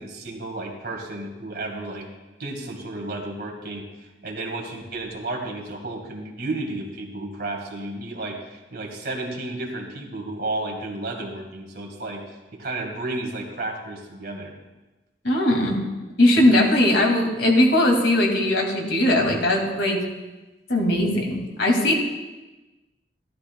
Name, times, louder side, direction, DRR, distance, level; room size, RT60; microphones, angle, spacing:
voice 1, 0.0-2.1 2.4-3.9 4.2-14.5 21.9-22.0, right 2 dB, 60° right, 2 dB, 1.9 m, -32 dB
voice 2, 15.2-15.8 16.2-20.0 20.7-21.9, left 1 dB, 70° left, 0 dB, 2.3 m, -19 dB
14.0 x 12.5 x 2.3 m, 1.1 s
head